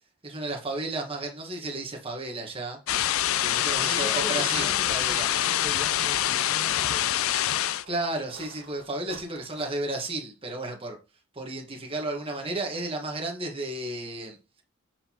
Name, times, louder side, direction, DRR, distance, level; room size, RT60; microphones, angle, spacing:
voice 1, 0.2-2.8 3.4-5.3 7.9-11.0 11.3-14.4, right 2 dB, 25° right, 1.4 m, -33 dB
sound 1, 2.9-7.8, left 11 dB, 70° left, 0.4 m, -25 dB
voice 2, 3.8-7.2, left 2 dB, 10° left, 0.6 m, -41 dB
sound 2, 5.5-5.7 6.0-6.1 7.8-10.1, right 3 dB, 70° right, 1.7 m, -50 dB
7.6 x 4.4 x 2.9 m
head